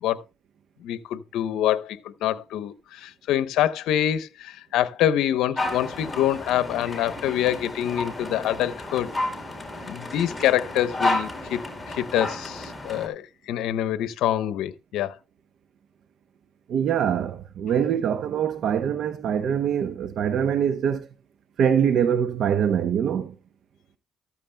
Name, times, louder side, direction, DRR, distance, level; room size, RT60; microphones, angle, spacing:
voice 1, 0.8-9.1 9.9-11.6 11.9-15.2, left 11 dB, 90° left, 0.8 m, -25 dB
sound 1, 5.5-13.1, left 2 dB, 15° left, 4.4 m, -31 dB
voice 2, 16.7-21.1 21.6-23.3, right 8 dB, 70° right, 0.8 m, -24 dB
14.0 x 13.5 x 2.2 m
cardioid pair, 90°, 0 cm